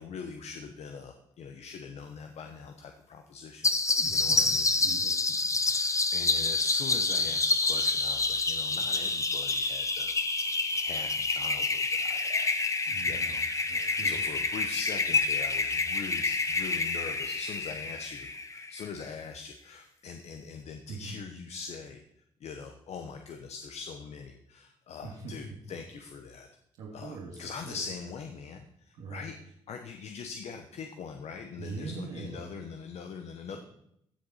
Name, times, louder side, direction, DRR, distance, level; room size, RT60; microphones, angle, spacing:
voice 1, 0.0-3.7 4.1-4.7 5.6-10.1 10.8-12.5 13.1-13.4 13.7-22.0 22.4-26.5 26.9-33.6, left 5 dB, 70° left, 5 dB, 1.1 m, -42 dB
sound 1, 3.6-18.9, left 3 dB, 25° left, 1.1 m, -28 dB
voice 2, 4.0-5.4 12.9-14.1 20.9-21.2 25.0-25.5 26.8-27.8 29.0-29.3 31.6-32.5, right 4 dB, 80° right, -4 dB, 2.0 m, -42 dB
15.5 x 6.9 x 4.2 m, 0.73 s
supercardioid pair, 65°, 12 cm